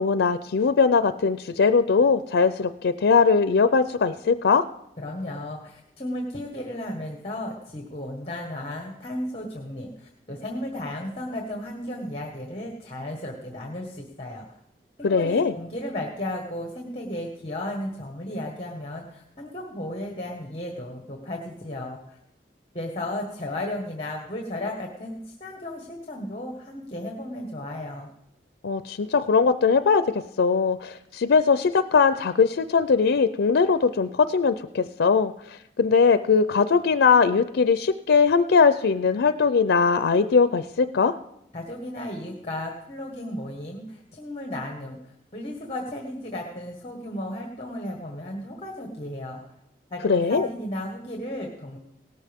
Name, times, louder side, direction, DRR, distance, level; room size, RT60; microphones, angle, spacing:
voice 1, 0.0-4.6 15.0-15.5 28.6-41.1 50.0-50.5, left 5 dB, 90° left, 12 dB, 0.5 m, -20 dB
voice 2, 5.0-14.5 15.0-22.2 22.7-28.1 41.5-45.0 45.3-49.4 49.9-51.8, left 1 dB, 35° left, 2 dB, 1.5 m, -34 dB
17.5 x 13.0 x 3.6 m, 0.82 s
head